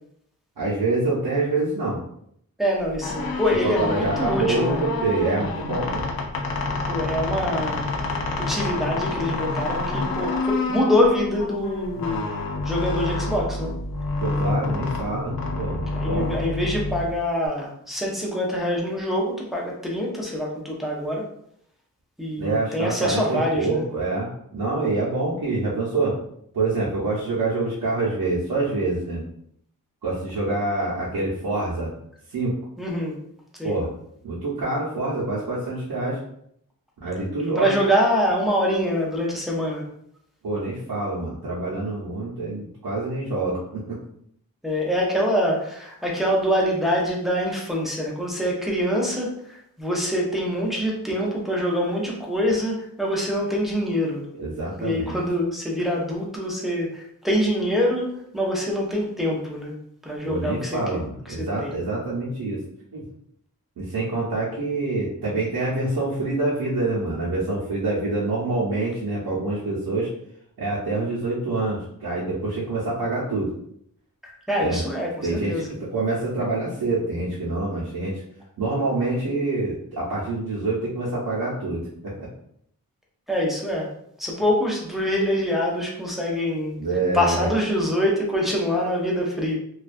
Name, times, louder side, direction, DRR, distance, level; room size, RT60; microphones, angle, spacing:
voice 1, 0.6-2.0 3.6-6.0 14.2-16.3 22.4-26.2 26.5-29.2 30.0-31.9 32.3-32.5 33.6-33.9 34.2-36.2 37.0-37.8 40.4-44.0 54.4-55.2 60.3-62.6 62.9-63.0 63.8-70.1 70.6-73.5 74.6-74.8 75.2-78.2 78.6-82.3 86.8-87.5, right 2 dB, 90° right, -7 dB, 0.7 m, -26 dB
voice 2, 2.6-4.8 6.9-7.9 8.5-12.3 12.6-13.7 16.0-21.2 22.2-23.8 32.8-33.2 33.6-33.7 37.4-39.8 44.6-54.2 54.8-58.1 58.3-59.7 60.0-60.8 61.3-61.8 74.2-75.7 83.3-83.9 84.2-86.8 87.1-89.5, equal, ahead, -3 dB, 0.4 m, -25 dB
sound 1, 2.9-17.5, left 3 dB, 75° left, 0.5 m, -28 dB
2.3 x 2.2 x 2.5 m, 0.70 s
wide cardioid pair, 175°, 36 cm